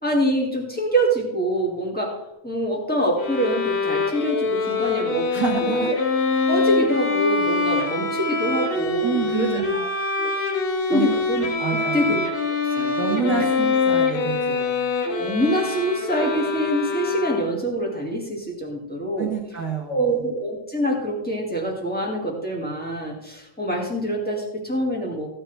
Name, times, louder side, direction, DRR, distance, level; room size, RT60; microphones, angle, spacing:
voice 1, 0.0-2.1 2.4-5.3 5.6-5.9 6.5-9.9 10.2-10.3 10.9-12.2 12.7-13.4 15.0-19.3 19.9-25.3, right 1 dB, 5° left, -1 dB, 1.1 m, -25 dB
Bowed string instrument, 3.2-17.7, left 4 dB, 50° left, 2.6 m, -24 dB
voice 2, 5.3-5.9 9.0-9.8 10.9-11.2 11.6-12.0 13.0-14.8 19.2-20.3, right 7 dB, 85° right, 0 dB, 0.9 m, -28 dB
15.0 x 8.7 x 3.4 m, 0.89 s
omnidirectional pair, 4.2 m